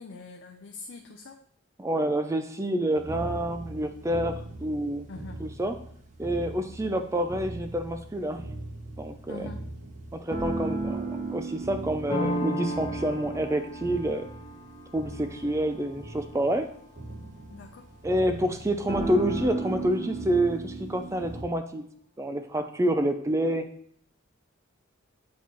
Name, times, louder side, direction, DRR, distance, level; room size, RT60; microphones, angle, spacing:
voice 1, 0.0-1.4 5.1-5.4 9.3-9.6 17.5-17.9, left 3 dB, 60° left, 2 dB, 0.5 m, -43 dB
voice 2, 1.8-5.1 5.4-5.7 6.2-8.4 9.0-9.5 10.1-14.2 14.9-16.7 18.0-21.8 22.2-23.7, right 1 dB, 15° right, 7 dB, 0.4 m, -28 dB
sound 1, 3.0-21.4, right 2 dB, 35° right, 0.9 m, -37 dB
sound 2, 12.1-17.6, equal, 20° left, 0.8 m, -35 dB
8.2 x 4.2 x 3.0 m, 0.63 s
head